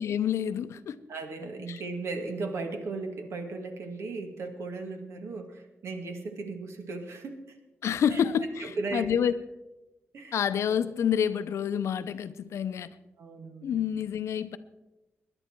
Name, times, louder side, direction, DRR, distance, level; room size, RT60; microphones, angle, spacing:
voice 1, 0.0-1.0 1.7-1.8 7.8-9.3 10.3-12.9 13.6-14.6, left 8 dB, 85° left, 0.7 m, -28 dB
voice 2, 1.1-7.6 8.1-8.2 8.6-9.1 10.1-10.4 13.2-13.7, right 3 dB, 70° right, 2.0 m, -36 dB
19.5 x 11.0 x 4.6 m
wide cardioid pair, 130°, 5 cm